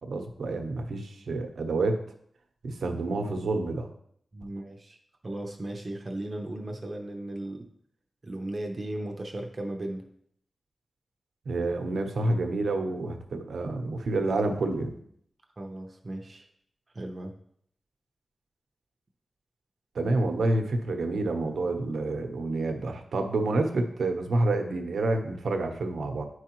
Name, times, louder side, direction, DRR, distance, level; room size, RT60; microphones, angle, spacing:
voice 1, 0.0-2.0 2.6-3.9 11.5-15.0 19.9-26.2, right 2 dB, 85° right, 5 dB, 0.9 m, -28 dB
voice 2, 4.3-5.0 5.2-7.7 8.2-10.1 15.6-16.5 16.9-17.3, right 1 dB, 30° right, 2 dB, 0.7 m, -36 dB
9.5 x 4.7 x 3.0 m, 0.68 s
wide cardioid pair, 150°, 0 cm